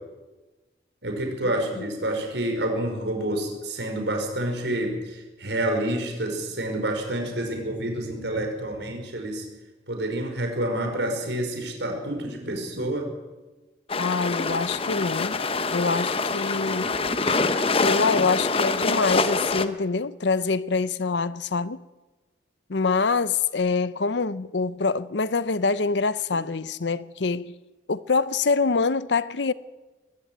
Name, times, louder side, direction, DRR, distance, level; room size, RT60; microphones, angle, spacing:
voice 1, 1.0-9.4 9.9-13.1, right 1 dB, 70° right, 5.3 m, -28 dB
sound 1, 13.9-19.7, left 3 dB, 30° left, 0.9 m, -25 dB
voice 2, 14.0-15.4 15.7-16.9 17.7-21.8 22.7-27.5 27.9-29.5, left 4 dB, 70° left, 0.7 m, -25 dB
20.5 x 15.5 x 9.4 m
head